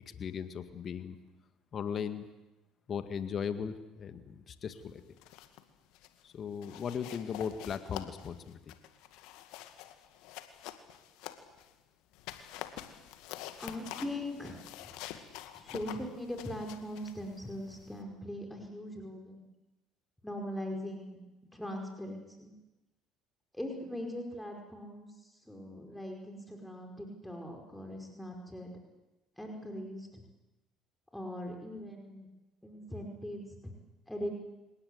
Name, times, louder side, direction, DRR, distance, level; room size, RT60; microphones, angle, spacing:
voice 1, 0.1-1.2 1.7-2.3 2.9-5.0 6.2-8.7, left 7 dB, 40° left, 10 dB, 1.9 m, -37 dB
sound 1, 5.0-5.6 5.9-6.2 6.6-11.7 12.1-18.0, left 13 dB, 65° left, 2.2 m, -47 dB
voice 2, 13.6-14.9 15.5-19.4 20.2-21.2 21.5-22.5 23.5-28.7 29.4-30.2 31.1-32.3 32.6-33.7 34.1-34.3, left 1 dB, 5° left, 2 dB, 5.2 m, -41 dB
29.5 x 18.0 x 8.2 m, 1.0 s
figure-of-eight pair, 60°, 0 cm